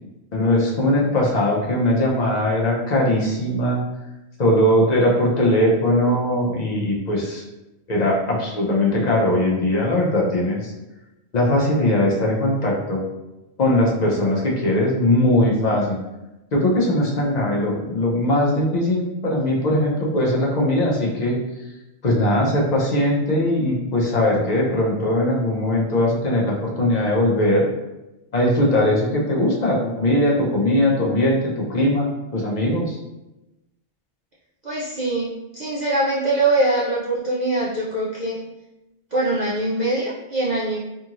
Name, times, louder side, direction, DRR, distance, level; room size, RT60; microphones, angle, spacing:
voice 1, 0.3-3.8 4.4-7.4 7.9-10.7 11.3-13.0 13.6-16.0 16.5-21.4 22.0-27.7 28.3-33.0, left 1 dB, 50° left, -3 dB, 0.5 m, -20 dB
voice 2, 34.6-38.4 39.1-40.8, right 2 dB, 50° right, -8 dB, 0.5 m, -23 dB
2.6 x 2.4 x 2.9 m, 0.98 s
omnidirectional pair, 1.2 m